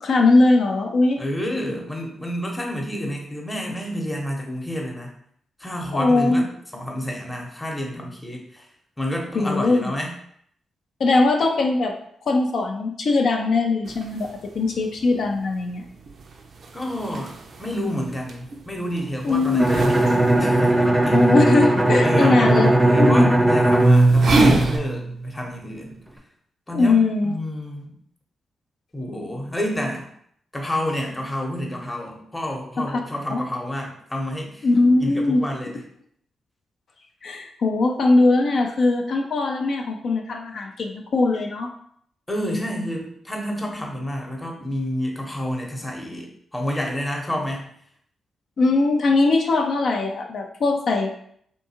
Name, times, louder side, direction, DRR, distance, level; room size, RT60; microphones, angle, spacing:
voice 1, 0.0-1.2 5.9-6.4 9.3-9.9 11.0-11.9 12.3-15.8 19.2-19.7 21.1-22.7 23.0-23.3 26.7-27.4 32.8-33.0 33.3-33.4 34.6-35.4 37.2-41.7 48.6-51.1, left 3 dB, 65° left, 3 dB, 0.3 m, -20 dB
voice 2, 1.2-5.1 5.6-8.7 9.0-10.1 16.7-21.4 22.0-22.5 22.8-26.0 26.7-27.9 28.9-30.1 30.5-34.7 35.0-35.8 42.3-47.7, equal, 20° left, 0 dB, 0.8 m, -29 dB
sound 1, 13.8-24.8, right 2 dB, 65° right, 0.3 m, -29 dB
Bowed string instrument, 19.6-25.3, right 1 dB, 10° right, 0.5 m, -18 dB
2.7 x 2.2 x 2.7 m, 0.65 s
hypercardioid pair, 40°, 0 cm